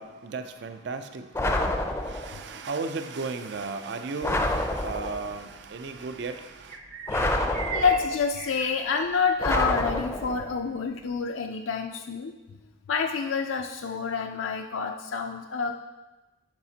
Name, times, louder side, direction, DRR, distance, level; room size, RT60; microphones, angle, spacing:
voice 1, 0.0-6.8, right 4 dB, 60° right, 8 dB, 0.4 m, -35 dB
sound 1, 1.3-2.4 4.2-5.3 7.1-8.2 9.4-10.5, left 1 dB, 15° left, 0.4 m, -28 dB
sound 2, 5.1-11.1, right 5 dB, 40° right, 0.9 m, -42 dB
voice 2, 7.7-12.3 12.9-15.7, left 5 dB, 80° left, 4 dB, 0.4 m, -28 dB
10.5 x 4.9 x 2.8 m, 1.1 s
head